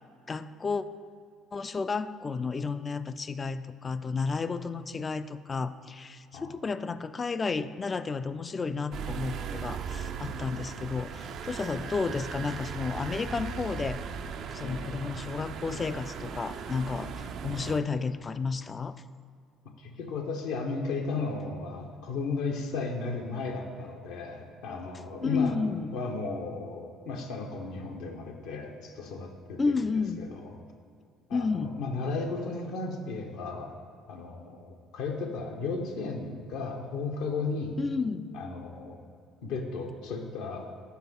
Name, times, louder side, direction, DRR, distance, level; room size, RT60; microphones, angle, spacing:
voice 1, 0.3-0.8 1.5-14.0 14.5-19.0 25.2-25.9 29.6-30.3 31.3-31.8 37.8-38.3, left 4 dB, 35° left, 13 dB, 0.3 m, -32 dB
sound 1, 8.9-17.8, right 6 dB, 60° right, 0.4 m, -38 dB
voice 2, 14.6-15.0 19.8-25.6 25.9-29.9 30.2-30.6 31.3-33.7 34.1-37.8 38.3-39.0 39.4-40.7, left 4 dB, 70° left, 2 dB, 0.8 m, -35 dB
5.8 x 5.1 x 6.0 m, 2.2 s
hypercardioid pair, 55°, 0 cm